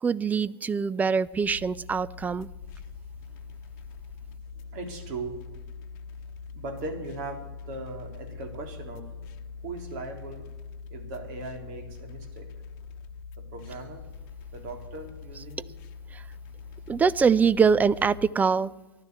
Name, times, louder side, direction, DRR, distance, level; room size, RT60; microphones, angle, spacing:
voice 1, 0.0-2.5 16.1-16.2 16.9-18.7, right 5 dB, 15° right, 18 dB, 0.4 m, -23 dB
sound 1, 1.4-18.3, left 5 dB, 45° left, 1.1 m, -43 dB
voice 2, 4.5-5.5 6.5-9.1 9.6-10.5 10.9-12.5 13.4-14.1 14.5-15.7 16.7-16.8, right 2 dB, 45° right, 4 dB, 3.4 m, -39 dB
15.0 x 11.5 x 8.0 m, 1.1 s
figure-of-eight pair, 95°, 12 cm